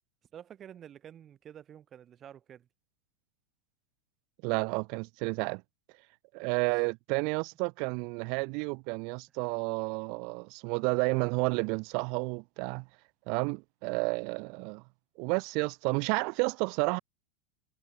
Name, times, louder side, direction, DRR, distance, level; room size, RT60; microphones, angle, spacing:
voice 1, 0.3-2.7 6.4-6.6, right 9 dB, 25° right, 0.9 m, -49 dB
voice 2, 4.4-5.6 6.3-12.9 13.3-14.8 15.2-17.0, right 34 dB, 50° right, 0.3 m, -31 dB
supercardioid pair, 150°, 0 cm